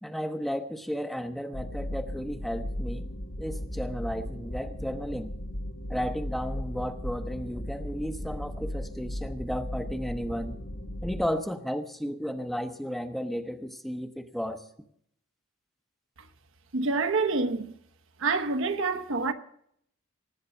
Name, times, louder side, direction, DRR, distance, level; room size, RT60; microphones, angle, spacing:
voice 1, 0.0-3.1 3.4-5.3 5.9-10.5 11.0-14.6, equal, ahead, 0.8 m, -33 dB
sound 1, 1.5-11.3, equal, 80° left, 2.2 m, -36 dB
voice 2, 16.7-17.7 18.2-19.3, right 3 dB, 65° right, 1.0 m, -27 dB
18.0 x 8.0 x 7.3 m
head